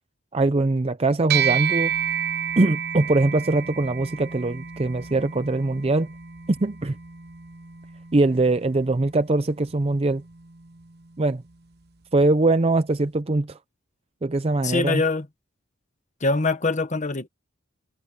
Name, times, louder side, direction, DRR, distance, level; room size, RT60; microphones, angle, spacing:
voice 1, 0.3-1.9 2.6-6.1 6.5-7.0 8.1-10.2 11.2-11.4 12.1-13.6 14.2-15.0, right 2 dB, 30° right, 0.6 m, -22 dB
sound 1, 1.3-10.9, right 8 dB, 55° right, 0.9 m, -31 dB
voice 2, 14.6-15.3 16.2-17.3, left 3 dB, 40° left, 1.4 m, -23 dB
head